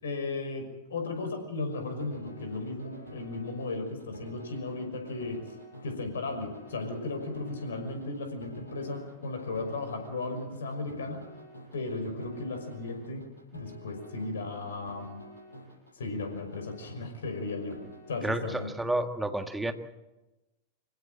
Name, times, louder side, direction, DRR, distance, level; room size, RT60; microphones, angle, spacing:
voice 1, 0.0-5.4 5.8-11.2 11.7-13.2 13.5-15.2 15.9-17.8 18.1-18.7, left 3 dB, 65° left, 6 dB, 5.7 m, -35 dB
sound 1, 1.6-18.7, equal, 80° left, 6.2 m, -49 dB
voice 2, 18.2-19.7, right 1 dB, 5° right, 7 dB, 1.8 m, -30 dB
26.0 x 16.5 x 7.7 m, 1.0 s
figure-of-eight pair, 90°, 0 cm